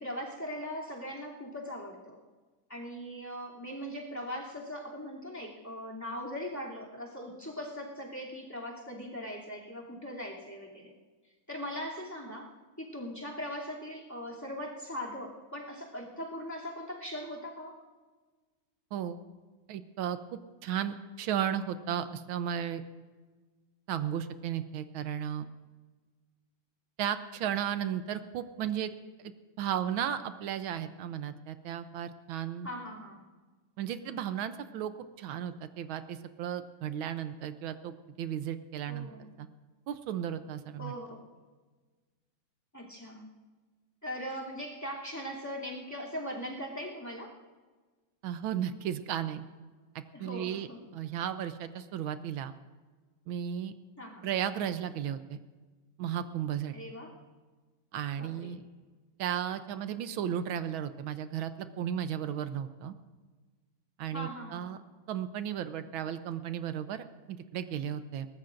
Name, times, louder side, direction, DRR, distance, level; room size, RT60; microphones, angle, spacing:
voice 1, 0.0-2.2 2.7-10.9 11.5-12.5 12.8-17.8 32.6-33.2 38.9-39.3 40.8-41.3 42.7-43.3 44.0-47.3 50.1-50.8 54.0-54.3 56.7-57.2 58.2-58.5 64.1-64.7, equal, 10° left, -4 dB, 2.8 m, -40 dB
voice 2, 19.7-20.2 20.6-22.8 23.9-25.5 27.0-28.9 29.2-29.3 29.6-32.7 33.8-34.9 35.2-39.5 39.9-40.9 48.2-49.4 50.2-52.5 53.3-53.7 54.2-55.4 56.0-56.7 57.9-58.7 59.2-61.5 61.8-62.9 64.0-64.8 65.1-68.3, right 9 dB, 90° right, 10 dB, 1.6 m, -34 dB
22.5 x 19.0 x 2.6 m, 1.3 s
omnidirectional pair, 2.2 m